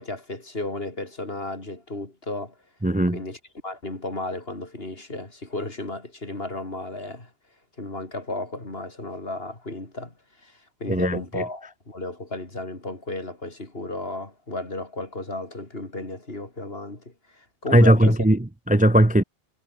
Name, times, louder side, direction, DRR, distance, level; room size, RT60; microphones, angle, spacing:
voice 1, 0.0-2.5 3.1-3.4 3.6-7.3 7.8-10.1 10.4-18.2, left 2 dB, 60° left, 4.6 m, -34 dB
voice 2, 2.8-3.2 10.9-11.4 17.7-19.2, right 1 dB, 10° right, 0.7 m, -18 dB
omnidirectional pair, 1.1 m